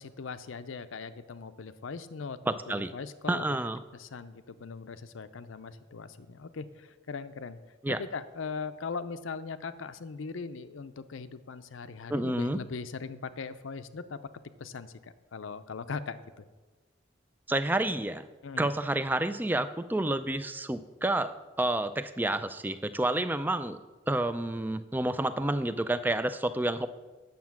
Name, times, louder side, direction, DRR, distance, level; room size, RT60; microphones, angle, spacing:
voice 1, 0.0-3.5 3.9-7.6 7.9-14.2 14.6-16.5 18.4-18.7, left 5 dB, 80° left, 13 dB, 0.6 m, -40 dB
voice 2, 2.5-2.9 3.3-3.8 7.8-8.0 12.1-12.6 17.5-18.2 18.6-23.8 24.1-26.9, right 1 dB, 10° right, 12 dB, 0.3 m, -29 dB
9.5 x 7.3 x 5.9 m, 1.3 s
head